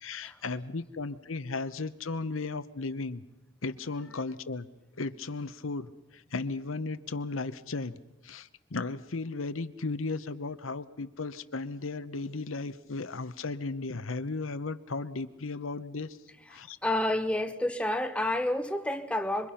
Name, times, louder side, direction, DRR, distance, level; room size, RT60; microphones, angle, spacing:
voice 1, 0.0-3.2 3.6-4.7 5.0-7.9 8.2-16.2 16.5-16.8, left 3 dB, 80° left, 1.0 m, -35 dB
voice 2, 16.8-19.5, left 1 dB, 5° left, 0.9 m, -29 dB
26.5 x 24.0 x 5.8 m
head